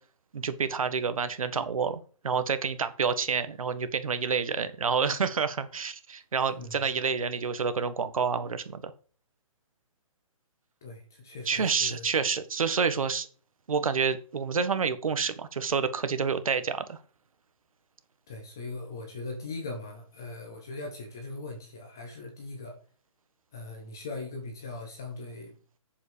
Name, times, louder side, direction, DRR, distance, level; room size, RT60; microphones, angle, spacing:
voice 1, 0.3-8.9 11.5-13.3 13.7-17.0, right 5 dB, 75° right, 1.6 m, -28 dB
voice 2, 6.5-6.9 10.8-12.1 18.3-22.8 23.5-25.6, left 3 dB, 5° left, 0.4 m, -40 dB
7.8 x 7.4 x 5.1 m
hypercardioid pair, 180°, 18 cm